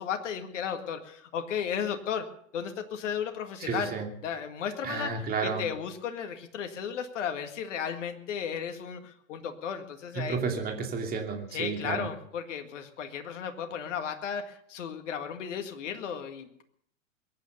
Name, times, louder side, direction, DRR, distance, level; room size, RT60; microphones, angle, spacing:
voice 1, 0.0-3.9 4.2-10.4 11.5-16.6, left 7 dB, 65° left, 6 dB, 2.0 m, -34 dB
voice 2, 3.6-4.1 4.8-5.7 10.1-12.1, right 5 dB, 25° right, 3 dB, 2.8 m, -32 dB
22.0 x 9.6 x 6.8 m, 0.69 s
figure-of-eight pair, 100°, 39 cm